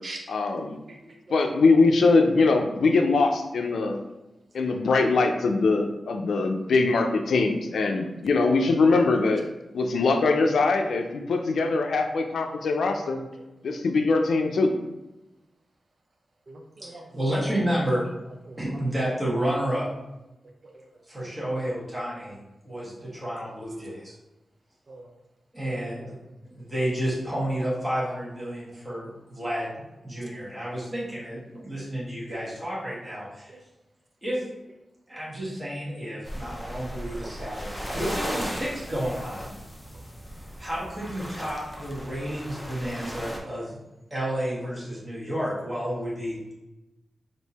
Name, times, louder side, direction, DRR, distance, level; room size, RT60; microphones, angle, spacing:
voice 1, 0.3-0.8 1.3-4.0 4.5-9.4 9.7-13.2 13.6-14.7, left 3 dB, 85° left, 4 dB, 0.5 m, -22 dB
voice 2, 0.9-1.5 8.1-8.2 13.4-13.7 16.5-17.2 18.5-18.7 20.6-21.0 24.9-25.1 26.0-26.4 33.5-33.6 37.2-37.5 39.9-40.0 43.4-43.6, right 2 dB, 40° right, 2 dB, 0.5 m, -45 dB
voice 3, 16.8-18.0 18.6-19.9 21.1-22.4 22.6-24.1 25.5-26.1 26.5-33.6 34.2-34.4 35.1-39.5 40.6-43.8 44.1-46.5, equal, 15° right, -7 dB, 1.3 m, -31 dB
sound 1, 36.2-43.4, equal, 5° left, 0.6 m, -36 dB
3.6 x 2.7 x 4.1 m, 0.99 s
wide cardioid pair, 160°, 0 cm